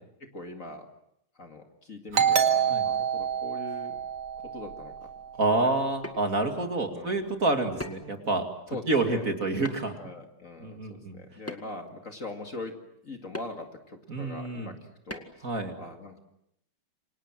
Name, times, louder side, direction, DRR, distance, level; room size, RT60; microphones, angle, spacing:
voice 1, 0.2-0.9 1.4-4.0 4.4-5.1 5.6-5.8 6.9-7.2 8.7-9.3 10.0-12.8 13.0-14.8 15.1-15.5 15.8-16.2, left 2 dB, 40° left, 4 dB, 2.5 m, -42 dB
Doorbell, 2.1-5.5, right 8 dB, 70° right, 2.8 m, -27 dB
voice 2, 5.4-8.5 8.9-10.0 10.6-11.2 14.1-14.7 15.4-15.7, right 2 dB, 40° right, 5 dB, 2.9 m, -28 dB
sound 1, 6.0-6.2 7.8-8.2 9.6-10.0 11.5-11.9 13.3-13.5 15.1-15.4, left 1 dB, 5° left, 1.9 m, -38 dB
28.5 x 25.5 x 7.6 m, 0.78 s
omnidirectional pair, 2.3 m